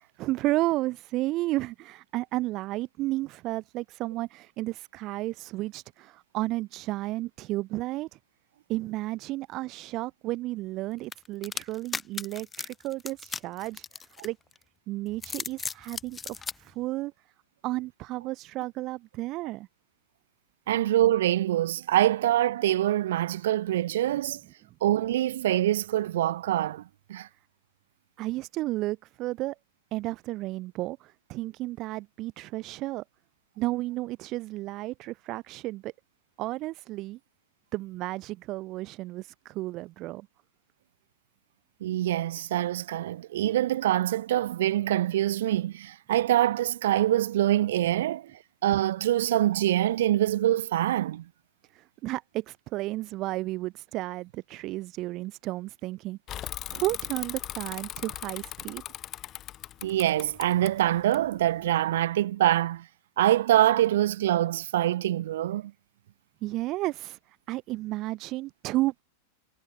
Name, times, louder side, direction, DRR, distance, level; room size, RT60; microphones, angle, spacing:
voice 1, 0.2-8.2 8.7-13.8 14.2-14.4 14.9-17.1 17.6-19.7 28.2-29.6 29.9-33.0 33.6-35.9 36.4-37.2 37.7-40.3 51.7-58.8 66.4-69.0, right 18 dB, 40° right, 4.6 m, -32 dB
sound 1, 11.1-14.6 15.1-16.6, left 5 dB, 15° left, 5.1 m, -36 dB
voice 2, 20.7-24.4 24.8-26.8 27.1-27.3 41.8-48.3 48.6-51.3 59.8-62.9 63.2-65.7, right 13 dB, 60° right, 0.6 m, -25 dB
Bicycle / Mechanisms, 56.3-61.7, left 12 dB, 30° left, 1.5 m, -39 dB
figure-of-eight pair, 90°, 0 cm